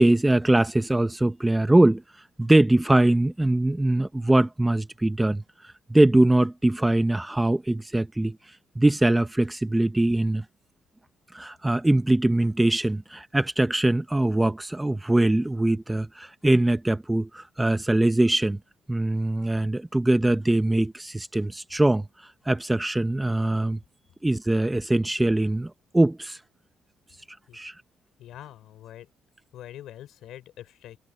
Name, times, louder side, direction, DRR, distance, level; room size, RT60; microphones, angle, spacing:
voice 1, 0.0-2.0 2.4-5.4 5.9-8.4 8.8-10.4 11.3-18.6 18.9-22.1 22.5-23.8 24.2-26.4 27.5-27.7, right 1 dB, 5° right, 0.8 m, -22 dB
voice 2, 28.2-29.1 29.5-31.0, left 12 dB, 65° left, 4.5 m, -44 dB
cardioid pair, 170°, 0 cm